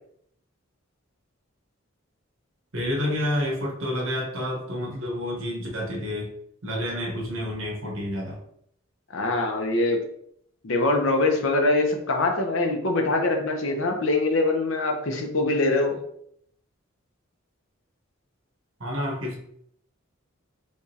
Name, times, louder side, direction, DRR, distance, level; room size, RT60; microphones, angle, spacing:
voice 1, 2.7-6.3 6.6-8.4 18.8-19.4, left 1 dB, 80° right, -1 dB, 1.2 m, -29 dB
voice 2, 9.1-10.0 10.6-16.0, left 2 dB, 70° left, 2 dB, 0.8 m, -23 dB
3.6 x 3.4 x 2.8 m, 0.69 s
head